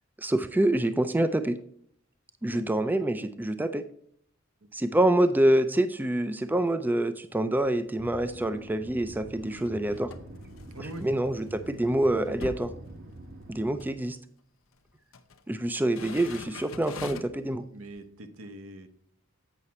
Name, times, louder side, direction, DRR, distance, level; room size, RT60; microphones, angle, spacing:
voice 1, 0.2-1.6 2.4-3.8 4.7-10.1 10.8-12.7 13.5-14.2 15.5-17.6, right 1 dB, 10° right, 10 dB, 0.3 m, -26 dB
sound 1, 7.4-7.9 8.3-11.4 11.7-11.8 12.1-13.5 13.8-14.0 14.8-15.4 15.8-17.5 18.0-18.1, left 4 dB, 75° left, 0.8 m, -45 dB
sound 2, 8.0-13.9, right 1 dB, 50° right, 1.0 m, -45 dB
voice 2, 10.7-11.1 17.7-18.9, right 1 dB, 75° right, 8 dB, 0.9 m, -42 dB
8.1 x 5.8 x 4.2 m, 0.64 s
head